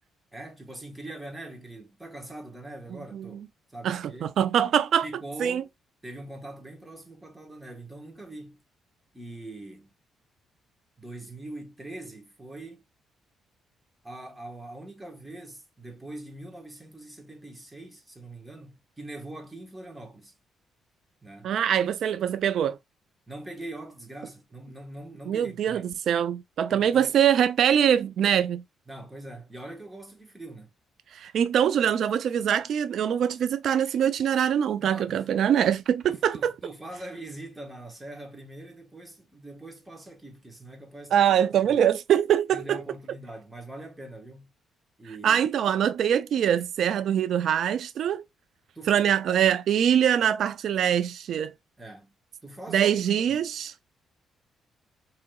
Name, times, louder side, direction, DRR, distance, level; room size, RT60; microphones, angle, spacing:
voice 1, 0.3-4.3 5.0-5.7 6.0-8.6 9.1-9.9 11.0-12.8 14.0-20.3 21.2-21.5 23.3-25.9 26.7-27.1 28.9-30.7 34.8-35.3 36.1-41.1 41.5-41.7 42.5-44.5 45.0-45.4 48.7-49.3 51.8-52.1 52.4-53.4, right 1 dB, 10° right, 1.2 m, -42 dB
voice 2, 3.8-5.1 5.4-5.6 21.4-22.8 25.3-28.6 31.1-36.5 41.1-42.8 45.2-48.2 48.9-51.5 52.7-53.7, right 9 dB, 70° right, 0.3 m, -23 dB
4.6 x 3.0 x 2.3 m
cardioid pair, 90°, 0 cm